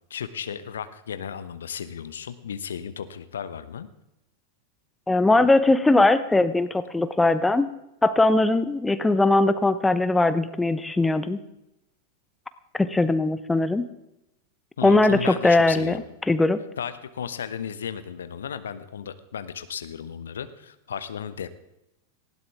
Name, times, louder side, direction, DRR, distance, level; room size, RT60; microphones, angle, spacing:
voice 1, 0.1-3.9 14.8-16.0 16.8-21.5, left 8 dB, 65° left, 12 dB, 1.0 m, -34 dB
voice 2, 5.1-7.7 8.0-11.4 12.7-13.9 14.8-16.0 16.3-16.6, left 2 dB, 10° left, 13 dB, 0.9 m, -20 dB
19.0 x 16.5 x 3.5 m, 0.88 s
figure-of-eight pair, 90°, 0 cm